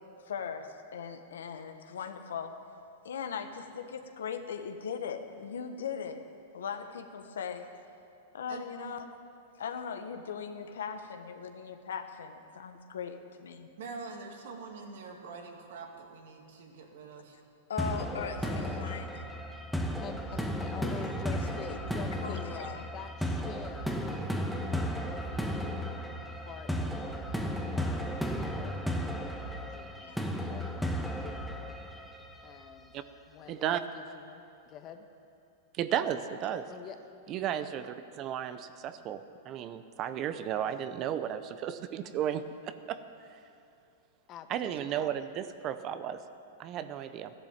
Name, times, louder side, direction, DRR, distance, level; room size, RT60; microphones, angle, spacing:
voice 1, 0.2-2.6 3.0-6.3 6.5-7.7 8.3-9.1 9.6-13.7 17.7-19.1 20.8-21.4 22.2-22.8 30.0-30.1, left 6 dB, 80° left, 7 dB, 1.2 m, -39 dB
voice 2, 8.5-8.9 13.8-17.3, right 4 dB, 70° right, 2 dB, 2.3 m, -45 dB
sound 1, 17.8-32.7, equal, ahead, 1.2 m, -34 dB
voice 3, 18.0-18.9 20.0-25.8 26.3-28.7 29.0-31.7 32.4-32.9 33.3-35.1 36.7-37.0 44.3-44.9, left 8 dB, 35° left, 7 dB, 1.2 m, -47 dB
voice 4, 33.5-33.8 35.7-36.7 37.3-43.0 44.5-46.2 46.6-47.3, right 10 dB, 40° right, 11 dB, 0.7 m, -34 dB
14.5 x 11.5 x 7.3 m, 2.7 s
hypercardioid pair, 115°, 0 cm